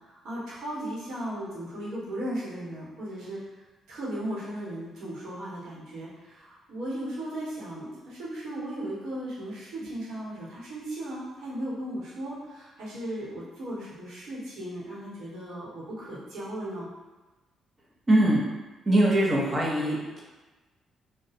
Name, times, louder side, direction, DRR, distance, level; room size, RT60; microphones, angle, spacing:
voice 1, 0.1-3.4 3.9-16.9, right 1 dB, 75° right, -8 dB, 1.1 m, -36 dB
voice 2, 18.1-18.4 18.9-20.2, right 1 dB, 30° right, -4 dB, 0.9 m, -22 dB
2.5 x 2.3 x 4.1 m, 1.2 s
cardioid pair, 90°, 0 cm